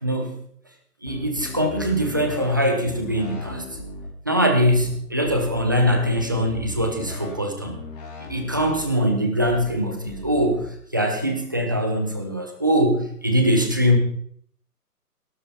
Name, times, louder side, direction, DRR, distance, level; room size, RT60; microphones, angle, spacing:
voice 1, 0.0-0.3 1.0-3.7 4.3-7.8 8.3-14.0, equal, 15° right, 4 dB, 0.7 m, -22 dB
sound 1, 1.1-2.5 2.8-4.1 4.6-4.9 5.2-7.3 7.6-8.9 9.4-9.7 10.0-10.6, left 1 dB, 25° left, 3.1 m, -37 dB
17.0 x 12.5 x 3.5 m, 0.62 s
figure-of-eight pair, 160°, 47 cm